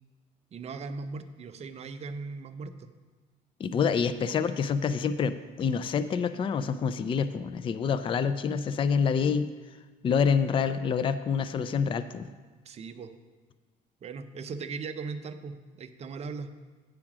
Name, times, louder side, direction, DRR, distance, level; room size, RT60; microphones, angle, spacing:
voice 1, 0.5-2.9 12.7-13.1 14.0-16.5, right 4 dB, 40° right, 9 dB, 0.6 m, -38 dB
voice 2, 3.6-9.5 10.0-12.3, left 6 dB, 30° left, 11 dB, 0.4 m, -27 dB
8.7 x 4.9 x 6.0 m, 1.3 s
cardioid pair, 110°, 17 cm